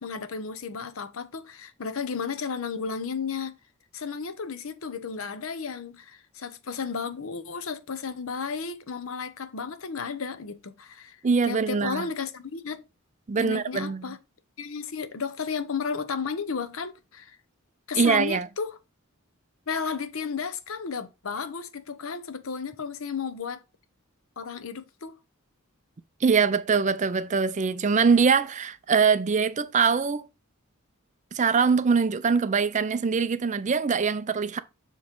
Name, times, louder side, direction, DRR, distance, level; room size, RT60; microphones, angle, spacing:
voice 1, 0.0-3.6 3.9-12.8 13.4-14.2 14.6-17.4 17.9-18.8 19.7-23.6 24.4-25.2, left 5 dB, 70° left, 0.8 m, -33 dB
voice 2, 11.2-12.0 13.3-14.0 18.0-18.5 26.2-30.3 31.3-34.6, right 5 dB, 35° right, 0.5 m, -23 dB
7.3 x 3.1 x 5.2 m
head